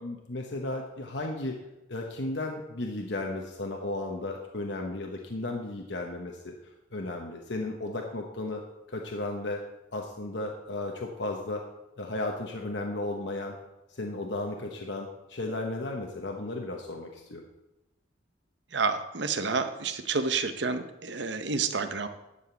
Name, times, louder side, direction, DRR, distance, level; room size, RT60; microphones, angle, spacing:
voice 1, 0.0-1.6 1.9-6.5 6.9-8.6 8.9-9.6 9.9-11.6 12.0-13.6 13.9-17.4, left 2 dB, 65° left, 1 dB, 1.0 m, -34 dB
voice 2, 18.7-22.1, right 4 dB, 65° right, 9 dB, 0.8 m, -29 dB
11.5 x 5.1 x 7.0 m, 0.97 s
head